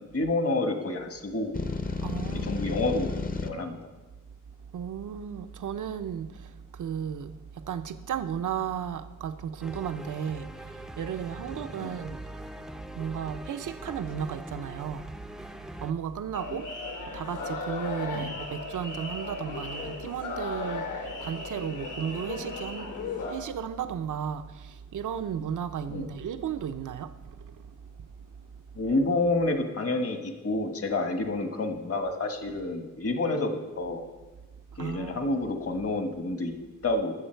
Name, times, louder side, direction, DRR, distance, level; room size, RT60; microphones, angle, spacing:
voice 1, 0.0-1.5 2.3-3.1 3.4-3.8 11.8-11.9 16.5-16.6 18.1-18.3 25.9-26.1 28.7-34.1 34.8-36.6 36.8-37.1, left 2 dB, 45° left, 1.5 m, -29 dB
sound 1, 1.5-3.5, left 3 dB, 25° left, 0.8 m, -32 dB
voice 2, 2.0-2.6 4.7-15.2 15.5-16.7 17.0-22.9 23.2-28.1 28.5-28.6 34.7-35.3, right 8 dB, 70° right, 0.7 m, -35 dB
sound 2, 9.6-15.9, right 1 dB, ahead, 0.5 m, -42 dB
sound 3, 16.3-23.3, left 3 dB, 75° left, 2.7 m, -36 dB
19.5 x 7.3 x 4.5 m
wide cardioid pair, 105°, 32 cm